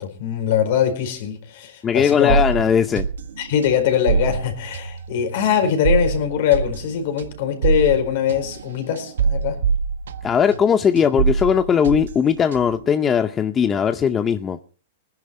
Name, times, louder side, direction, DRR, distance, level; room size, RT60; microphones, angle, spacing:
voice 1, 0.0-2.4 3.4-9.6, left 9 dB, 55° left, 4.6 m, -22 dB
voice 2, 1.8-3.1 10.2-14.6, left 7 dB, 20° left, 0.7 m, -19 dB
sound 1, 2.3-10.7 11.0-12.9, right 6 dB, 85° right, 1.4 m, -25 dB
20.0 x 11.0 x 4.3 m
hypercardioid pair, 145°, 0 cm